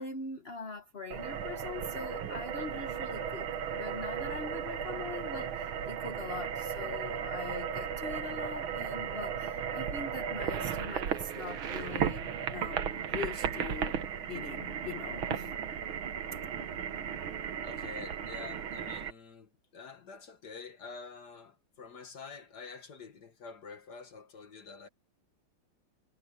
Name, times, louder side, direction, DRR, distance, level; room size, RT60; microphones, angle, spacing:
voice 1, 0.0-3.5 3.8-15.5, left 4 dB, 35° left, 1.3 m, -42 dB
sound 1, 1.1-19.1, right 8 dB, 75° right, 2.1 m, -35 dB
voice 2, 17.6-24.9, left 5 dB, 55° left, 2.2 m, -47 dB
omnidirectional pair, 2.3 m